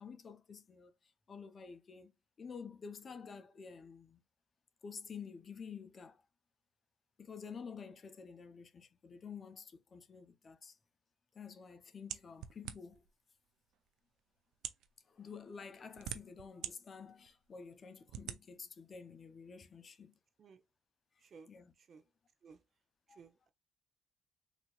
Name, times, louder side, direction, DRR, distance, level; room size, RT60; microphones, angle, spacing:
voice 1, 0.0-2.1 2.4-4.2 4.8-6.3 7.2-10.8 11.3-13.1 15.0-20.2 21.1-21.7 23.1-23.2, left 6 dB, 40° left, 0.7 m, -50 dB
sound 1, 12.1-13.1 13.9-14.0 14.5-14.9 15.6-16.7 17.2-17.3 18.1-18.4, right 11 dB, 80° right, 0.6 m, -43 dB
voice 2, 23.2-23.5, right 5 dB, 50° right, 0.8 m, -57 dB
4.0 x 2.9 x 2.4 m
cardioid pair, 90°, 0 cm